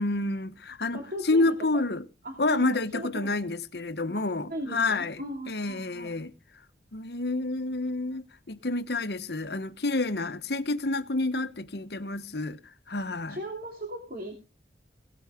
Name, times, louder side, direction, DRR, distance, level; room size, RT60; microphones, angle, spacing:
voice 1, 0.0-2.0 2.4-6.3 6.9-12.6 12.9-13.4, left 2 dB, 65° left, 1.2 m, -29 dB
voice 2, 0.9-1.8 2.2-3.4 4.1-6.2 13.3-14.3, right 1 dB, 55° right, 3.0 m, -38 dB
17.5 x 9.6 x 4.9 m
head